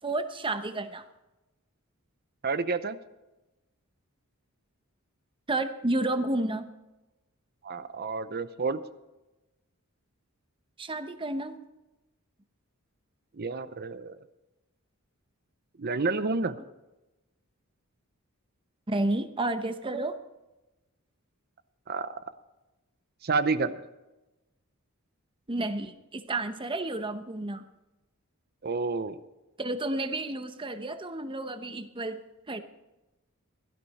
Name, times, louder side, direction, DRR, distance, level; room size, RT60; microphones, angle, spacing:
voice 1, 0.0-1.0 5.5-6.7 10.8-11.5 18.9-20.2 25.5-27.6 29.6-32.2 32.5-32.6, right 2 dB, 25° right, 9 dB, 0.9 m, -31 dB
voice 2, 2.4-3.0 7.6-8.8 13.3-14.2 15.8-16.6 21.9-22.2 23.2-23.7 28.6-29.2, right 4 dB, 45° right, 13 dB, 0.7 m, -29 dB
16.5 x 13.0 x 4.2 m, 1.0 s
head